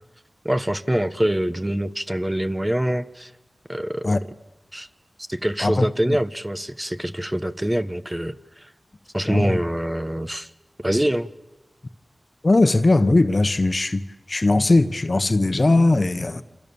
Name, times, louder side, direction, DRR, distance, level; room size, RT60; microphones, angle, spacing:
voice 1, 0.4-3.3 3.7-4.1 4.7-4.9 5.3-8.7 9.1-10.5 10.8-11.3, right 1 dB, 15° right, 1.2 m, -25 dB
voice 2, 5.6-6.2 9.2-9.6 12.4-16.4, left 2 dB, 45° left, 1.2 m, -19 dB
29.0 x 27.0 x 7.1 m
cardioid pair, 45°, 0 cm